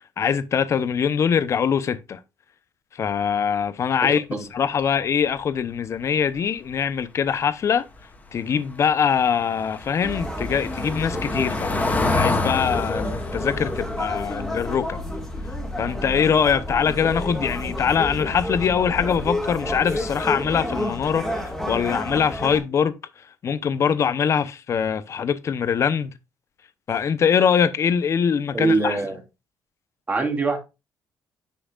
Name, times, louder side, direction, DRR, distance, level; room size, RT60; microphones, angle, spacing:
voice 1, 0.2-2.2 3.0-4.2 4.5-7.8 8.3-11.7 12.1-15.0 15.8-22.9 23.4-26.1 26.9-29.0, left 7 dB, 45° left, 0.8 m, -23 dB
Car passing by / Engine, 8.7-15.7 16.0-16.2 16.5-16.6, left 3 dB, 20° left, 1.6 m, -29 dB
sound 1, 10.0-22.6, left 1 dB, 5° left, 2.1 m, -30 dB
voice 2, 28.5-29.2 30.1-30.6, right 3 dB, 20° right, 2.2 m, -23 dB
10.0 x 5.8 x 2.4 m
cardioid pair, 130°, 7 cm